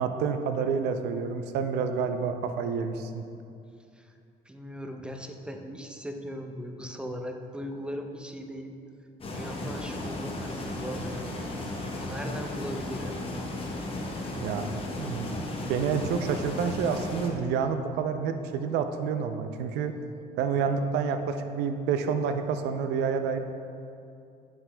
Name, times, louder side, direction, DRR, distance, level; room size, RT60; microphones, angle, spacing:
voice 1, 0.0-3.2 14.4-19.9 20.4-23.4, right 6 dB, 85° right, 8 dB, 0.4 m, -29 dB
voice 2, 4.5-8.8 9.3-13.1 19.7-19.8, equal, 5° right, 4 dB, 0.4 m, -39 dB
sound 1, 9.2-17.3, left 2 dB, 35° left, 0.8 m, -35 dB
7.8 x 5.9 x 2.2 m, 2.5 s
cardioid pair, 110°, 17 cm